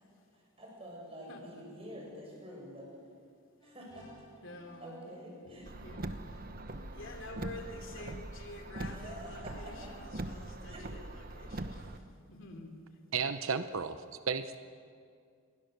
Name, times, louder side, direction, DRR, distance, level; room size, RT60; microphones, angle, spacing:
voice 1, 0.6-2.9 3.6-4.1 4.8-5.6 8.8-9.9 10.7-10.9, equal, 25° right, -2 dB, 7.8 m, -47 dB
sound 1, 3.6-5.1 5.4-10.2, equal, 20° left, 7.3 m, -57 dB
voice 2, 4.4-4.9 5.5-6.2 6.9-9.7 10.2-11.0 11.3-11.8 12.3-12.7, left 2 dB, 60° left, 4 dB, 3.2 m, -48 dB
Car, 5.7-12.0, right 1 dB, 45° right, 1.1 m, -42 dB
voice 3, 13.1-14.6, right 5 dB, 75° right, 10 dB, 0.9 m, -33 dB
27.5 x 22.5 x 6.8 m, 2.2 s
head